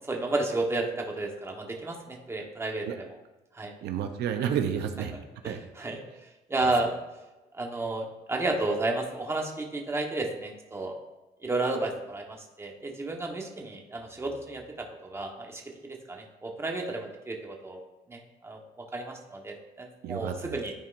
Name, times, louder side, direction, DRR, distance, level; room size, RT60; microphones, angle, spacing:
voice 1, 0.0-2.8 3.5-3.7 4.4-4.5 5.1-5.2 5.4-6.0 6.5-6.9 7.5-11.0 11.4-17.8 18.1-20.7, right 2 dB, 15° right, 1 dB, 1.2 m, -32 dB
voice 2, 3.8-5.1 5.4-5.6 20.0-20.6, right 8 dB, 75° right, 6 dB, 0.7 m, -30 dB
13.0 x 4.4 x 2.6 m, 1.1 s
cardioid pair, 110°, 17 cm